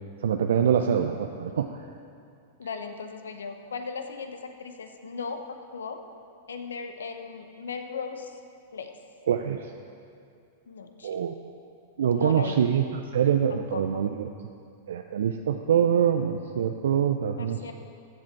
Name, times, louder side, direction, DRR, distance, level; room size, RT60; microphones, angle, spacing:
voice 1, 0.2-1.8 9.3-9.7 11.0-11.4 12.0-14.3 14.9-17.7, right 8 dB, 70° right, 5 dB, 0.5 m, -25 dB
voice 2, 2.6-6.0 6.5-8.4 8.7-8.9 10.7-11.2 12.1-12.6 13.5-14.0 17.4-17.7, left 5 dB, 80° left, 7 dB, 0.9 m, -37 dB
14.5 x 7.4 x 4.5 m, 2.4 s
hypercardioid pair, 100°, 0 cm